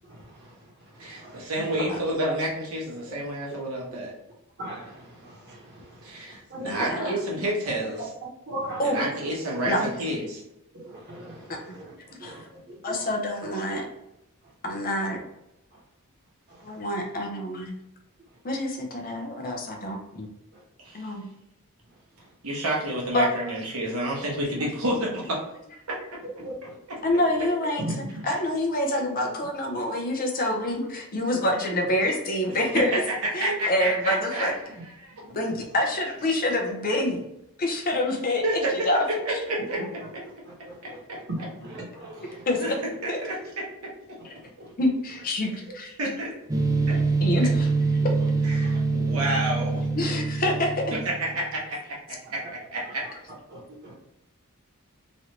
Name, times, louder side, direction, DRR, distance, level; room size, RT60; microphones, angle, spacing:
voice 1, 0.1-0.5 1.0-1.4 4.6-6.1 6.5-6.9 8.0-8.1 8.5-9.1 9.8-9.9 10.7-11.9 12.2-12.4 12.9-13.0 16.5-16.6 26.4-26.7 27.8-28.2 35.2-35.4 39.8-39.9 40.7-41.0 41.3-42.4 48.6-48.8 49.1-49.2 53.5-53.9, right 1 dB, 50° right, -4 dB, 1.2 m, -37 dB
voice 2, 1.0-4.1 6.0-8.1 8.8-10.4 20.8-21.0 22.4-25.4 28.3-28.4 32.5-34.6 35.0-35.1 38.4-38.7 39.2-40.0 42.6-42.7 43.0-43.4 46.0-46.3 46.9-47.0 48.4-49.9 50.9-52.4 52.7-53.0, right 1 dB, 70° right, -3 dB, 1.0 m, -29 dB
voice 3, 6.6-7.2 8.8-9.0 9.6-9.8 12.2-12.4 12.8-13.8 14.6-15.2 16.6-17.7 18.4-20.3 20.9-21.3 23.1-23.3 27.0-27.9 28.2-33.0 33.3-34.5 35.3-37.2 37.6-39.4 42.5-42.7 43.1-43.2 44.2-44.3 44.8-45.9 47.2-47.7 49.9-50.8, left 1 dB, 40° left, 1 dB, 0.6 m, -26 dB
sound 1, 46.5-51.4, right 3 dB, 15° right, 0.4 m, -25 dB
3.2 x 2.6 x 2.9 m, 0.85 s
head